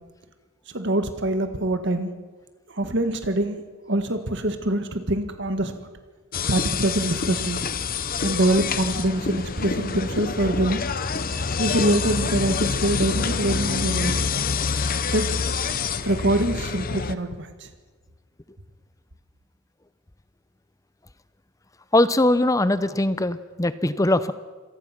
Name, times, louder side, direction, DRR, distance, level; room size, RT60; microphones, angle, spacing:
voice 1, 0.7-2.1 2.7-3.6 3.9-5.9 6.5-7.7 8.2-10.8 11.6-14.2 15.1-15.4 16.1-17.7, right 1 dB, 55° right, 8 dB, 1.7 m, -24 dB
sound 1, 6.3-17.2, left 5 dB, 40° left, 0.8 m, -27 dB
voice 2, 21.9-24.3, left 1 dB, 15° left, 14 dB, 0.6 m, -21 dB
26.5 x 19.0 x 5.9 m, 1.4 s
head